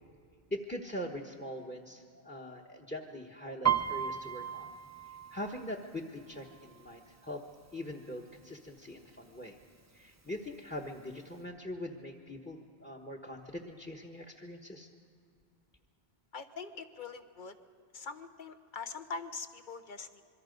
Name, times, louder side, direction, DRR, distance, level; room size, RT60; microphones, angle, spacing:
voice 1, 0.5-4.7 5.3-7.4 7.7-9.6 9.9-14.9, left 1 dB, 10° left, 3 dB, 1.1 m, -42 dB
Piano, 3.6-7.3 7.6-8.1 8.4-9.0 9.6-9.7 10.0-11.0 11.4-11.5, right 9 dB, 20° right, 0.6 m, -35 dB
voice 2, 16.3-17.6 17.9-20.2, left 4 dB, 50° left, 9 dB, 1.2 m, -43 dB
26.0 x 23.0 x 5.3 m, 2.3 s
omnidirectional pair, 1.1 m